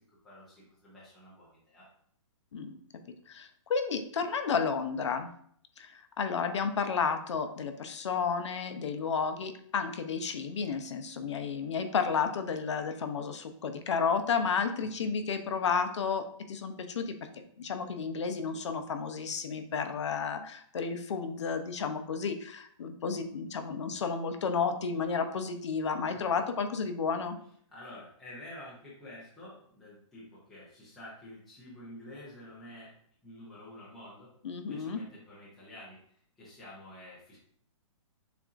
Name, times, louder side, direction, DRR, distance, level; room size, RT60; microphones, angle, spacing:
voice 1, 0.0-1.9 15.0-15.1 26.0-26.2 27.7-32.9 33.2-34.3 34.7-36.0 36.4-37.4, left 1 dB, ahead, -9 dB, 0.4 m, -49 dB
voice 2, 3.3-5.3 5.8-27.4 34.4-35.0, left 5 dB, 60° left, 7 dB, 0.5 m, -32 dB
6.7 x 2.5 x 2.4 m, 0.63 s
hypercardioid pair, 180°, 17 cm